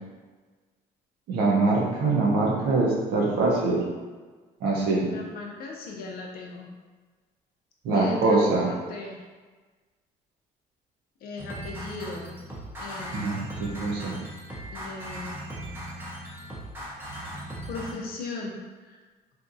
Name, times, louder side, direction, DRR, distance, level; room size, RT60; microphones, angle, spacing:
voice 1, 1.3-3.8 4.6-5.1 7.8-8.7 13.1-14.2, right 3 dB, 80° right, -3 dB, 0.8 m, -23 dB
voice 2, 5.0-6.7 7.9-9.2 11.2-12.3 12.8-13.5 14.7-15.3 17.7-19.0, left 3 dB, 65° left, 0 dB, 0.6 m, -37 dB
sound 1, 11.4-17.9, right 1 dB, 15° right, 0.7 m, -38 dB
2.8 x 2.5 x 2.5 m, 1.4 s
cardioid pair, 110°, 17 cm